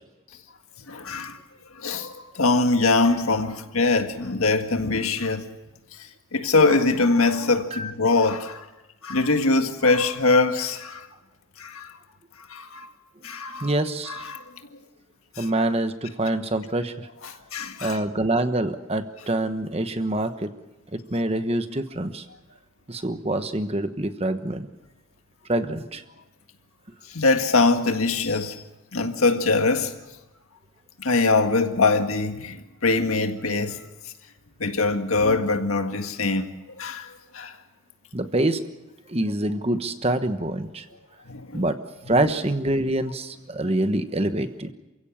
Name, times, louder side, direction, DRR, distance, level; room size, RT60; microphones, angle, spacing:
voice 1, 0.9-1.4 1.8-5.5 6.3-8.6 9.0-11.1 11.6-11.9 12.5-12.9 13.2-13.7 14.1-14.4 15.4-15.5 17.2-18.0 27.1-28.6 28.9-29.9 31.0-33.8 34.6-36.5 36.8-37.5 41.3-41.6, left 3 dB, 80° left, 1.8 m, -23 dB
voice 2, 13.6-14.2 15.4-17.1 17.8-20.5 20.9-22.2 22.9-24.7 25.5-26.0 38.1-38.6 39.1-40.8 41.5-41.8 42.1-44.7, right 1 dB, 30° right, 1.1 m, -25 dB
28.5 x 16.0 x 7.3 m
head